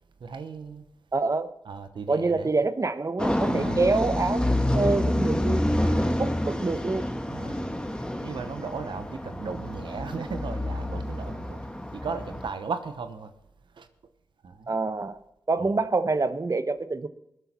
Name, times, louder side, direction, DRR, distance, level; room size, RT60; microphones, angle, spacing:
voice 1, 0.2-0.8 1.7-2.5 3.5-4.1 5.8-6.7 7.3-7.6 8.0-11.6 11.9-13.3 13.8-13.9 14.4-14.8 15.6-15.7, right 5 dB, 75° right, 9 dB, 0.9 m, -36 dB
voice 2, 1.1-1.5 2.1-4.4 4.7-5.7 6.2-7.1 14.7-15.2 15.5-17.1, right 3 dB, 40° right, 12 dB, 1.0 m, -26 dB
sound 1, 3.2-12.5, left 1 dB, 10° left, 1.4 m, -28 dB
20.5 x 8.2 x 4.3 m, 0.80 s
cardioid pair, 40°, 8 cm